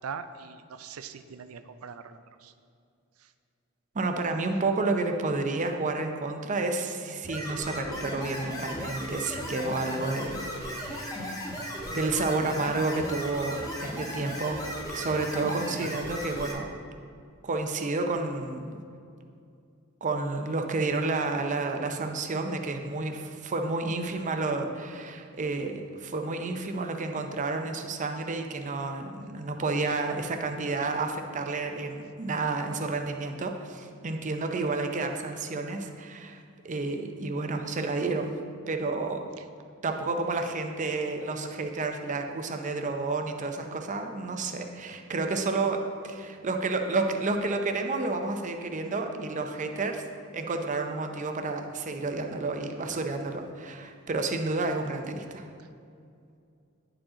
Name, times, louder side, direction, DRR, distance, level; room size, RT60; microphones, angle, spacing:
voice 1, 0.0-2.5 39.4-39.5, right 6 dB, 90° right, 11 dB, 0.4 m, -41 dB
voice 2, 3.9-11.4 11.9-14.6 14.9-16.7 17.4-18.8 20.0-38.4 38.7-39.2 39.8-45.8 46.0-50.0 50.3-55.5, right 3 dB, 35° right, 5 dB, 0.6 m, -30 dB
sound 1, 7.2-16.5, equal, 15° left, 1.0 m, -36 dB
9.9 x 4.8 x 3.8 m, 2.4 s
head